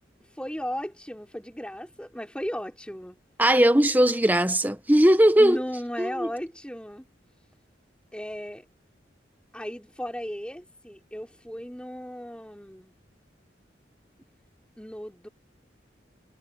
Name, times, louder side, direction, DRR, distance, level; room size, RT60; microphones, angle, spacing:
voice 1, 0.4-3.2 5.4-7.0 8.1-8.7 9.5-12.9 14.8-15.3, equal, 5° left, 5.4 m, -36 dB
voice 2, 3.4-5.6 6.0-6.3, right 1 dB, 10° right, 1.3 m, -19 dB
head